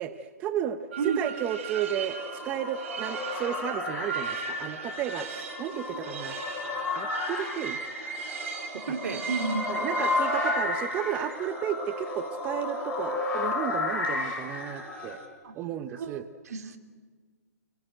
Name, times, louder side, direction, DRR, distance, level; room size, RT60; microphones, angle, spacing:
voice 1, 0.0-0.8 1.0-2.2 2.4-6.3 6.9-7.8 8.7-9.2 9.7-15.2 15.5-16.3, right 10 dB, 15° right, 10 dB, 0.7 m, -33 dB
sound 1, 0.9-15.3, right 4 dB, 45° right, 4.4 m, -39 dB
sound 2, 1.7-15.2, left 3 dB, 10° left, 4.8 m, -33 dB
voice 2, 8.9-9.8 15.4-15.5 16.0-16.2 16.5-16.8, right 5 dB, 60° right, 6 dB, 2.6 m, -31 dB
29.0 x 19.0 x 9.1 m, 1.5 s
hypercardioid pair, 165°, 10 cm